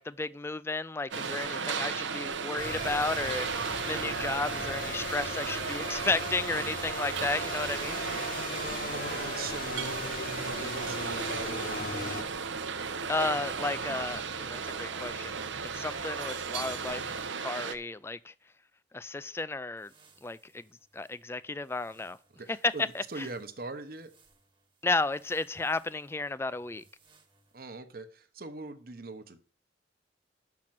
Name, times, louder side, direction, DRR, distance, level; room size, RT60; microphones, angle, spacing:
voice 1, 0.0-3.5 3.8-8.0 13.1-15.4 15.7-17.0 17.4-18.3 18.9-19.9 20.2-20.6 20.9-22.2 22.6-23.3 24.8-26.8, left 3 dB, 15° left, 0.3 m, -33 dB
sound 1, 1.1-17.8, right 5 dB, 85° right, 0.7 m, -35 dB
sound 2, 2.6-12.2, left 3 dB, 50° left, 1.0 m, -38 dB
voice 2, 8.9-10.0 10.4-12.2 16.7-17.1 22.4-24.1 27.5-29.4, right 3 dB, 50° right, 0.9 m, -42 dB
sound 3, 10.2-17.3 19.8-21.1 21.7-23.6 24.0-24.4 24.9-26.1 26.5-27.5, right 1 dB, 25° right, 1.2 m, -55 dB
6.4 x 6.0 x 7.4 m
head